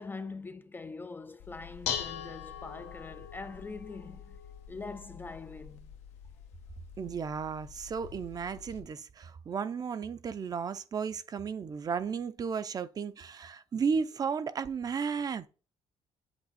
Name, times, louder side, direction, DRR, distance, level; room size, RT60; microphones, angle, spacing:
voice 1, 0.0-4.4 4.7-5.9, left 4 dB, 20° left, 0.4 m, -43 dB
Dishes pots and pans, 1.4-8.8, left 8 dB, 85° left, 1.1 m, -43 dB
voice 2, 7.0-15.5, right 6 dB, 35° right, 0.5 m, -34 dB
8.0 x 2.9 x 4.2 m
cardioid pair, 125°, 11 cm